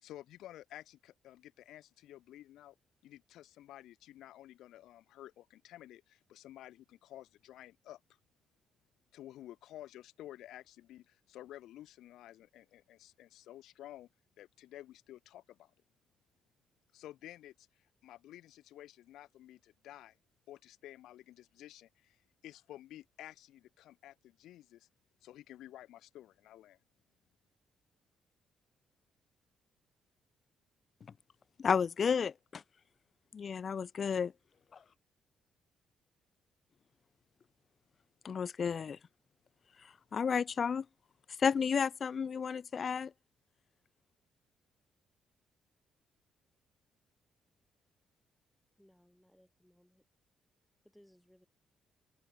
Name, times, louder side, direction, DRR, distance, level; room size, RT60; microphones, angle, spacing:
voice 1, 0.0-2.8 3.0-8.0 9.1-14.1 14.4-15.7 16.9-20.2 20.5-24.9 25.2-26.8, left 13 dB, 85° left, 3.6 m, -52 dB
voice 2, 31.6-32.6 33.3-34.3 38.2-39.0 39.8-40.8 41.4-43.1, left 6 dB, 45° left, 0.4 m, -32 dB
voice 3, 48.8-50.1 50.8-51.5, equal, 5° left, 5.9 m, -65 dB
cardioid pair, 90°, 0 cm